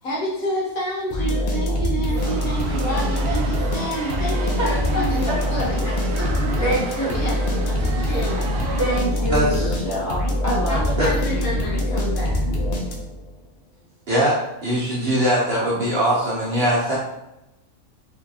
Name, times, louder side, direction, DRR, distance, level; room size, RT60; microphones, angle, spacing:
voice 1, 0.0-5.8 6.2-6.7 7.0-8.7 10.7-12.6, right 1 dB, 70° left, -4 dB, 1.4 m, -29 dB
sound 1, 1.1-13.3, left 1 dB, 55° left, 0.6 m, -24 dB
sound 2, 2.2-9.0, right 4 dB, 90° right, 1.1 m, -33 dB
voice 2, 4.6-5.9 6.6-7.2 8.8-10.9, equal, 10° left, -7 dB, 1.2 m, -26 dB
voice 3, 9.3-9.7 11.0-11.1 14.1-14.4 14.6-17.0, equal, 50° right, -5 dB, 0.8 m, -21 dB
4.3 x 2.8 x 2.7 m, 0.94 s
omnidirectional pair, 1.6 m